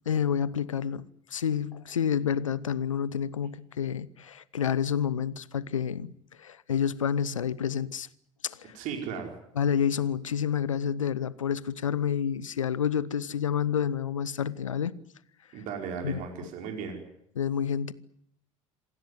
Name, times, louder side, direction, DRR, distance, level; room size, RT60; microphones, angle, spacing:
voice 1, 0.1-6.1 6.4-8.1 8.4-8.7 9.6-14.9 16.0-16.2 17.4-17.9, left 8 dB, 75° left, 0.9 m, -29 dB
voice 2, 8.7-9.3 15.5-17.0, right 6 dB, 50° right, 4.9 m, -36 dB
27.0 x 17.0 x 9.7 m
figure-of-eight pair, 70°, 17 cm